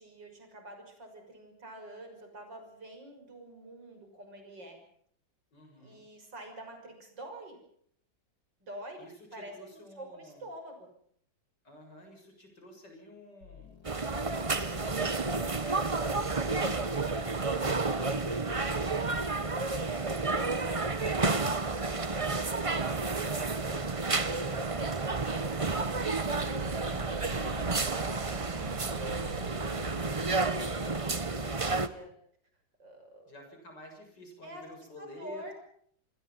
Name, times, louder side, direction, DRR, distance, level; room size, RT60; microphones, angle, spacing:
voice 1, 0.0-4.8 5.8-7.6 8.6-9.0 9.3-10.9 17.6-18.3 18.8-22.3 22.7-25.9 26.3-28.5 28.9-32.1 32.8-33.3 34.4-34.6 35.0-35.5, right 1 dB, 65° right, 4 dB, 6.9 m, -48 dB
voice 2, 5.5-6.1 9.0-10.5 11.6-13.8 14.1-19.2 26.8-27.4 33.2-35.5, left 1 dB, 60° left, 3 dB, 7.8 m, -51 dB
sound 1, 13.4-19.6, left 12 dB, 75° left, 2.6 m, -52 dB
sound 2, 13.8-31.9, right 3 dB, 25° right, 0.8 m, -31 dB
sound 3, 22.8-30.7, right 5 dB, 85° right, 2.2 m, -44 dB
27.5 x 22.5 x 5.8 m, 0.63 s
omnidirectional pair, 2.1 m